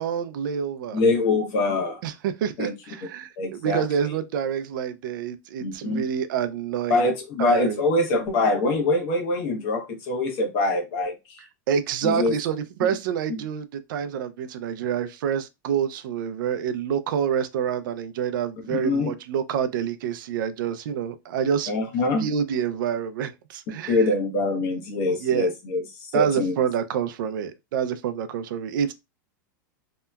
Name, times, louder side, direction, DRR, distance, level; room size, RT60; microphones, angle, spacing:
voice 1, 0.0-1.0 2.0-7.1 7.4-7.8 11.7-21.7 22.2-24.1 25.2-25.5 26.1-28.9, right 8 dB, 80° right, 0.4 m, -27 dB
voice 2, 0.9-2.0 2.6-2.7 3.4-4.1 5.6-6.0 6.9-11.4 12.0-12.4 18.7-19.1 21.7-22.3 23.9-26.5, left 2 dB, 45° left, 0.8 m, -24 dB
2.8 x 2.2 x 2.2 m
supercardioid pair, 155°, 11 cm